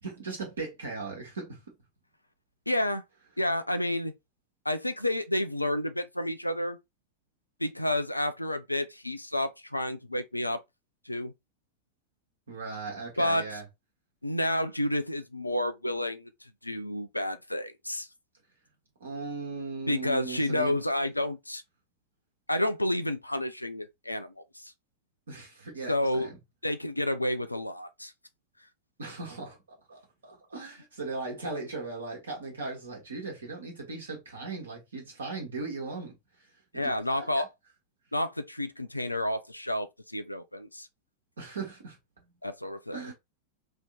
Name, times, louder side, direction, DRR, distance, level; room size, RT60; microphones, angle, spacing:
voice 1, 0.0-1.7 12.5-13.6 19.0-20.8 25.3-26.4 29.0-37.5 41.4-42.0 42.9-43.1, right 3 dB, 70° right, 1.3 m, -38 dB
voice 2, 2.7-3.0 3.4-4.1 4.7-6.8 7.6-10.6 11.1-11.3 13.2-13.5 14.2-18.1 19.9-21.6 22.5-24.7 25.9-26.3 26.6-28.1 36.7-37.5 38.1-40.9 42.4-43.0, left 1 dB, 85° left, 0.4 m, -30 dB
3.2 x 2.9 x 3.6 m
figure-of-eight pair, 90°, 0 cm